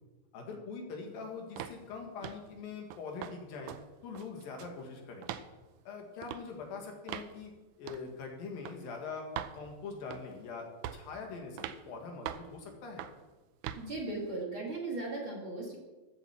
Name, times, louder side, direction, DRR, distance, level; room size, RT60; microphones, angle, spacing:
voice 1, 0.3-3.7 4.0-5.3 5.9-7.5 7.8-9.3 9.5-10.7 10.9-13.0, left 4 dB, 75° left, 2 dB, 3.6 m, -43 dB
sound 1, 1.6-1.8 2.2-2.5 2.9-3.4 3.7-3.8 4.2-4.8 5.2-5.5 6.2-6.4 7.1-7.3 7.9-8.1 8.7-8.8 9.4-9.6 10.1-10.4 10.8-11.1 11.6-11.8 12.3-12.5 13.0-13.2 13.6-13.9, right 11 dB, 80° right, 1.7 m, -41 dB
voice 2, 13.7-15.8, right 2 dB, 40° right, -2 dB, 2.5 m, -37 dB
13.5 x 7.5 x 7.1 m, 1.2 s
omnidirectional pair, 4.2 m